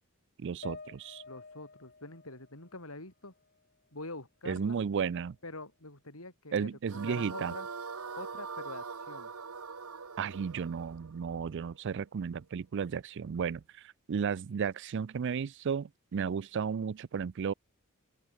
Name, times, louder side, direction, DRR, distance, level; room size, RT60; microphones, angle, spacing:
voice 1, 0.4-1.2 4.5-5.4 6.5-7.5 10.2-13.6 14.1-17.5, right 6 dB, 55° right, 0.4 m, -33 dB
sound 1, 0.6-4.0 4.4-5.5, left 3 dB, 50° left, 3.4 m, -52 dB
voice 2, 1.3-3.3 3.9-4.8 5.4-7.7 8.2-9.3, left 2 dB, 75° left, 7.3 m, -45 dB
sound 2, 6.9-12.1, right 5 dB, 90° right, 1.4 m, -43 dB
open air
head